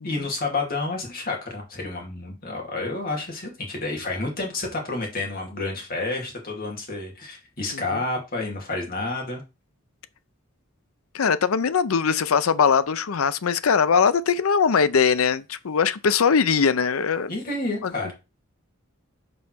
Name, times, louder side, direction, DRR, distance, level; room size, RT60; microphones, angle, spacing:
voice 1, 0.0-9.4 17.3-18.1, left 2 dB, 45° left, 2.6 m, -30 dB
voice 2, 11.1-17.3 17.8-18.1, left 6 dB, 85° left, 0.6 m, -21 dB
5.5 x 4.2 x 6.0 m
head